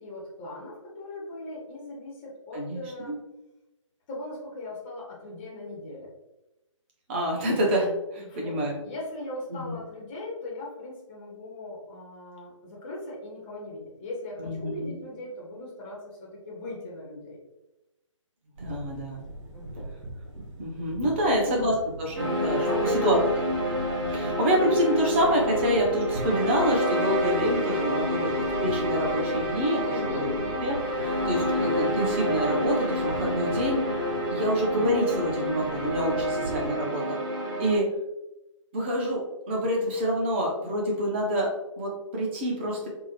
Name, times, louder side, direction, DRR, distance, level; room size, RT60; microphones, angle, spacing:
voice 1, 0.0-3.2 4.1-6.1 8.2-17.4 19.5-19.9 21.2-21.6 22.6-23.1 29.8-30.6, left 2 dB, 20° left, -4 dB, 0.6 m, -39 dB
voice 2, 2.5-3.1 7.1-8.8 9.5-9.7 14.4-14.9 18.6-19.2 20.6-22.7 23.0-23.2 24.1-29.9 30.1-30.3 30.6-30.8 31.0-33.9 34.3-37.0 37.6-37.9 38.7-42.9, equal, 20° right, -1 dB, 0.6 m, -27 dB
sound 1, 18.6-36.7, right 2 dB, 65° right, 1.2 m, -41 dB
sound 2, 22.1-37.8, equal, 40° right, 1.2 m, -28 dB
3.6 x 2.0 x 2.9 m, 0.96 s
figure-of-eight pair, 140°, 17 cm